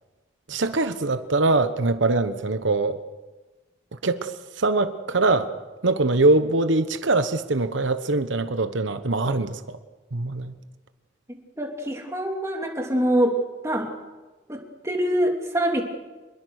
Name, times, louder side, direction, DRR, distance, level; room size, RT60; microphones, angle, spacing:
voice 1, 0.5-3.0 4.0-5.5 5.8-9.8 10.1-10.5, right 2 dB, 85° right, 10 dB, 1.1 m, -23 dB
voice 2, 11.6-13.9 14.5-15.8, right 1 dB, 15° right, 1 dB, 3.1 m, -25 dB
26.5 x 21.5 x 6.5 m, 1.2 s
head